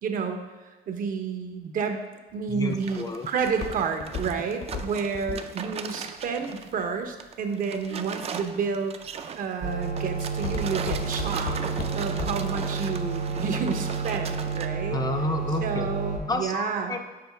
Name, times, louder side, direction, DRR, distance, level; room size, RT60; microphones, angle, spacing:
voice 1, 0.0-2.0 2.3-11.6 11.9-15.0 15.6-17.0, right 5 dB, 55° right, 6 dB, 0.8 m, -30 dB
Walk footsteps, 2.3-7.5 8.1-8.5 9.0-9.4 9.7-12.6 12.9-13.0, left 5 dB, 60° left, 0.9 m, -35 dB
voice 2, 2.5-3.3 5.3-5.4 14.9-15.9 16.3-17.0, left 3 dB, 20° left, 6 dB, 0.4 m, -30 dB
sound 1, 2.7-6.7 7.1-14.7, right 7 dB, 35° right, 0.4 m, -38 dB
sound 2, 9.6-16.2, right 4 dB, 70° right, 1.6 m, -30 dB
6.8 x 4.6 x 3.4 m, 1.3 s
cardioid pair, 110°, 17 cm